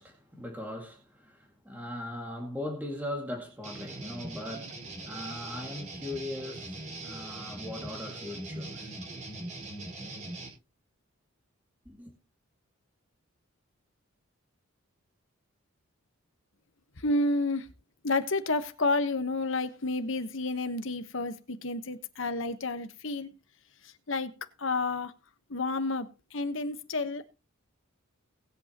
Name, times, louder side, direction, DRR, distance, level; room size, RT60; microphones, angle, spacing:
voice 1, 0.0-4.8 5.1-8.9 11.9-12.1, left 1 dB, 10° right, 2.1 m, -39 dB
sound 1, 3.6-10.5, right 2 dB, 35° right, 5.0 m, -41 dB
voice 2, 17.0-17.7 18.0-23.3 23.8-24.3 24.6-25.1 25.5-27.3, left 2 dB, 60° left, 1.2 m, -30 dB
19.5 x 8.3 x 2.9 m
head